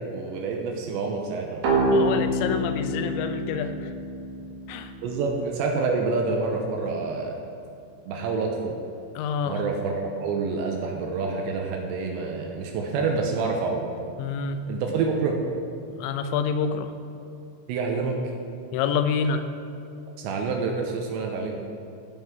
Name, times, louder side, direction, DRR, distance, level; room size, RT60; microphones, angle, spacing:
voice 1, 0.1-1.6 5.0-7.3 8.1-8.7 9.5-13.9 14.7-15.3 17.7-18.2 20.2-21.6, right 4 dB, 80° right, 1 dB, 3.1 m, -27 dB
sound 1, 1.6-5.1, right 1 dB, 60° right, 3.1 m, -26 dB
voice 2, 1.8-3.9 4.7-4.9 9.2-9.6 14.2-14.6 16.0-16.9 18.7-19.5, left 6 dB, 90° left, 9 dB, 3.0 m, -27 dB
16.0 x 5.5 x 6.0 m, 2.6 s
omnidirectional pair, 5.2 m